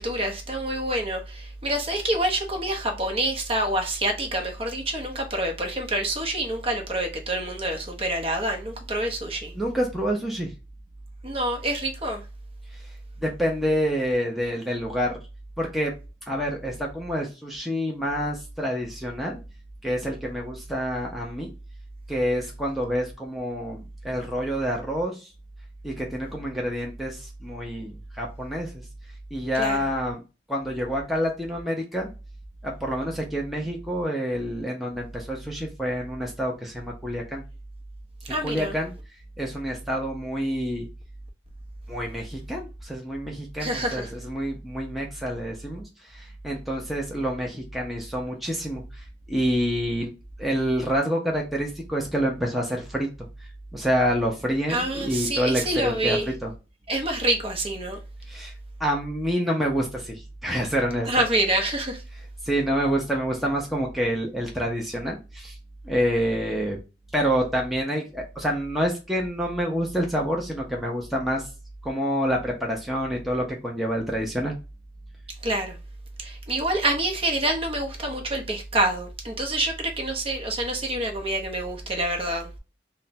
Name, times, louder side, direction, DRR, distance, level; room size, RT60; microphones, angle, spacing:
voice 1, 0.0-9.5 11.2-12.2 29.5-29.9 38.3-38.7 43.6-44.1 54.7-56.3 56.9-58.0 61.1-62.0 75.4-75.8 76.2-82.5, right 1 dB, 35° right, 0.8 m, -27 dB
voice 2, 9.5-10.5 13.2-15.2 15.6-15.9 16.3-19.4 19.8-21.5 22.1-25.3 25.8-28.8 29.3-30.2 30.5-32.1 32.6-37.4 38.4-38.9 39.4-40.9 41.9-50.1 50.4-53.1 53.7-56.5 58.3-58.5 58.8-61.1 62.4-65.6 65.8-66.8 67.1-71.4 71.8-74.6, equal, ahead, 0.6 m, -27 dB
3.3 x 2.2 x 4.0 m
head